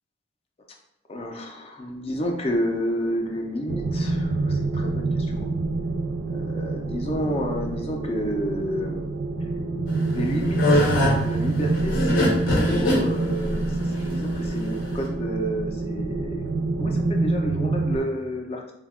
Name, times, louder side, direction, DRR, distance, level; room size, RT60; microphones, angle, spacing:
voice 1, 1.1-5.5 6.3-9.1 9.4-9.5 10.1-16.4 16.8-18.7, equal, 30° left, 2 dB, 0.3 m, -30 dB
sound 1, 3.7-18.0, right 2 dB, 80° right, 0.3 m, -26 dB
sound 2, 9.9-15.1, left 1 dB, 75° left, 0.8 m, -23 dB
3.4 x 2.2 x 2.3 m, 0.86 s
head